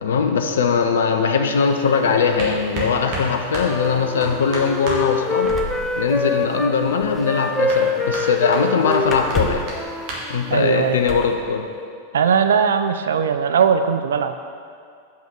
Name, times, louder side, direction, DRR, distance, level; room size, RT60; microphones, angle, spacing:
voice 1, 0.0-5.5 6.0-9.6 10.3-11.6, left 5 dB, 65° left, 5 dB, 0.5 m, -20 dB
sound 1, 1.5-11.3, right 2 dB, 45° right, 1.8 m, -35 dB
Wind instrument woodwind instrument, 3.6-6.7 7.2-10.6, left 2 dB, ahead, 0.6 m, -25 dB
sound 2, 5.4-6.7 7.0-7.2 9.0-9.8 11.0-11.4 12.6-12.7 13.1-13.5, left 3 dB, 25° left, 0.9 m, -29 dB
voice 2, 10.5-11.0 12.1-14.4, right 7 dB, 65° right, 9 dB, 0.3 m, -19 dB
6.1 x 5.6 x 6.3 m, 2.3 s
figure-of-eight pair, 90°, 0 cm